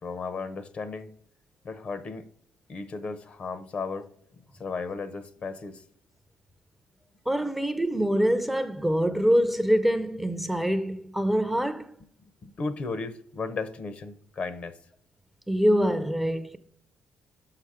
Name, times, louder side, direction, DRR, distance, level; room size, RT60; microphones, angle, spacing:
voice 1, 0.0-1.1 1.6-2.3 2.7-5.8 7.4-7.5 12.2-14.8, left 4 dB, 45° left, 0.7 m, -35 dB
voice 2, 7.3-11.9 15.5-16.6, equal, 5° right, 0.5 m, -25 dB
6.2 x 5.8 x 4.8 m
cardioid pair, 115°, 3 cm